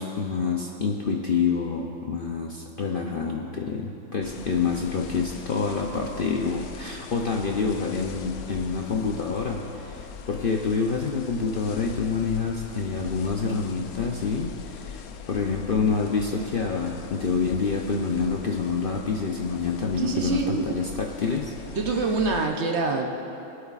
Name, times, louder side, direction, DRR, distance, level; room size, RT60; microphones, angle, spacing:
voice 1, 0.0-15.0 15.3-21.5, left 5 dB, 55° left, 1 dB, 0.6 m, -27 dB
sound 1, 4.2-22.5, left 7 dB, 80° left, 1.1 m, -41 dB
voice 2, 20.0-20.7 21.8-23.1, right 4 dB, 55° right, 2 dB, 0.9 m, -25 dB
22.0 x 8.0 x 2.4 m, 2.9 s
omnidirectional pair, 1.5 m